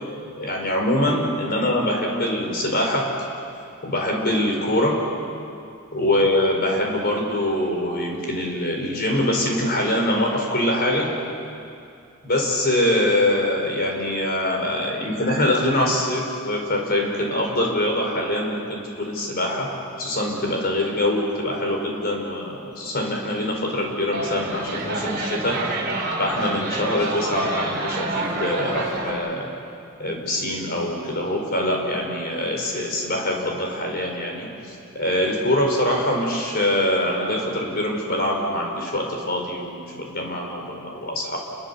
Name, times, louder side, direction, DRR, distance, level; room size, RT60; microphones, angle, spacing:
voice 1, 0.4-3.1 3.8-5.0 5.9-11.1 12.2-19.7 20.0-25.6 26.2-29.5 30.0-41.4, left 1 dB, 45° left, 1 dB, 4.9 m, -24 dB
sound 1, 24.1-29.1, right 2 dB, 40° right, 5.1 m, -28 dB
30.0 x 22.5 x 7.2 m, 2.5 s
head